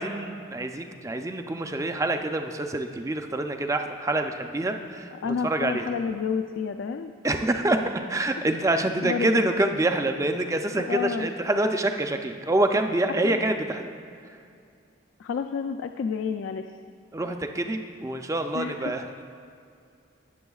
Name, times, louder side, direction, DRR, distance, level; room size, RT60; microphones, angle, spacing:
voice 1, 0.0-5.9 7.2-13.9 17.1-19.2, right 2 dB, 15° right, 6 dB, 0.4 m, -26 dB
voice 2, 5.2-7.1 8.7-9.5 10.9-11.3 13.2-13.4 15.2-16.7 18.5-18.9, left 6 dB, 70° left, 7 dB, 0.3 m, -30 dB
19.0 x 7.0 x 2.4 m, 2.4 s
head